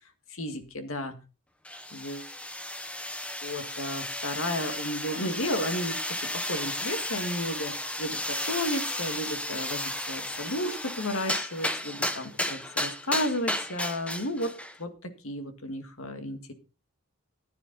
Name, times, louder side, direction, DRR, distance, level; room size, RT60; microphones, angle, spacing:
voice 1, 0.3-1.2 1.9-2.3 3.4-14.5 14.8-16.5, left 1 dB, 70° left, 8 dB, 1.9 m, -33 dB
sound 1, 1.6-14.8, left 1 dB, 5° left, 0.8 m, -33 dB
14.0 x 9.8 x 4.0 m, 0.34 s
head